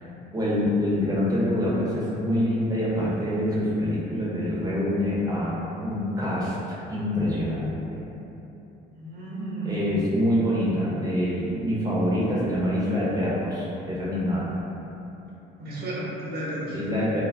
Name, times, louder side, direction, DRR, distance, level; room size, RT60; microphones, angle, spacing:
voice 1, 0.3-5.6 5.8-8.0 9.6-14.6 16.7-17.2, left 1 dB, 20° right, -8 dB, 0.9 m, -25 dB
voice 2, 8.9-9.8 15.6-16.8, right 1 dB, 55° right, -6 dB, 1.1 m, -33 dB
2.4 x 2.1 x 3.4 m, 3.0 s
supercardioid pair, 80°, 19 cm